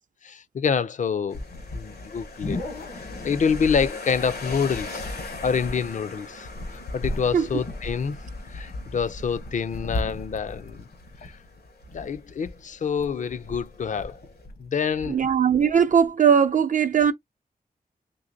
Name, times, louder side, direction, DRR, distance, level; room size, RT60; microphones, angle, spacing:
voice 1, 0.2-1.4 1.7-2.6 3.0-5.1 5.4-8.2 8.5-10.8 11.2-11.4 11.9-14.2 14.6-15.2, left 6 dB, 55° left, 0.4 m, -27 dB
sound 1, 1.3-14.4, left 3 dB, 90° left, 1.3 m, -42 dB
sound 2, 1.3-16.1, left 2 dB, 75° left, 1.1 m, -37 dB
voice 2, 15.1-17.1, right 7 dB, 55° right, 0.4 m, -19 dB
3.9 x 3.1 x 2.6 m
wide cardioid pair, 120°, 16 cm